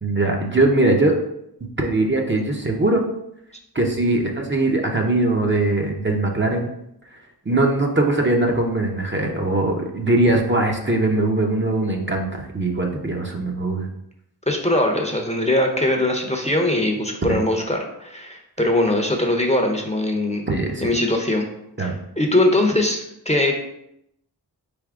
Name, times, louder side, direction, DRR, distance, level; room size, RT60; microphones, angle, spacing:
voice 1, 0.0-1.2 1.8-3.0 3.7-6.7 7.5-13.9 17.3-17.4 20.5-20.9 21.8-22.0, right 2 dB, 30° right, 1 dB, 0.7 m, -21 dB
voice 2, 14.5-20.4 20.8-21.5 21.8-23.5, left 1 dB, 15° left, 2 dB, 0.7 m, -21 dB
4.2 x 3.5 x 3.6 m, 0.78 s
wide cardioid pair, 45°, 41 cm